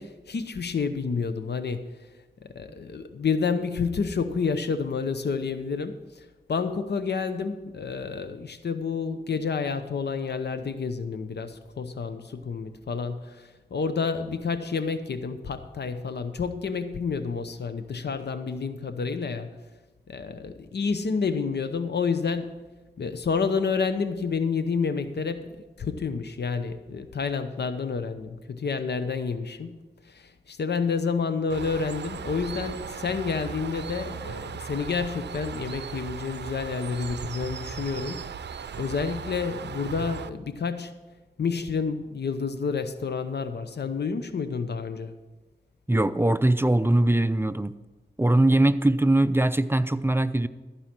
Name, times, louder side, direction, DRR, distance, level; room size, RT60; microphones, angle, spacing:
voice 1, 0.0-1.9 2.5-6.0 6.5-19.5 20.1-22.5 23.0-25.5 25.8-29.8 30.1-38.3 38.7-40.9 41.4-45.1, left 5 dB, 75° left, 10 dB, 0.8 m, -29 dB
Bird, 31.5-40.3, right 7 dB, 80° right, 0.5 m, -37 dB
voice 2, 45.9-47.7 48.2-50.5, right 1 dB, 15° right, 13 dB, 0.5 m, -21 dB
14.0 x 4.9 x 7.5 m, 1.2 s
cardioid pair, 45°, 17 cm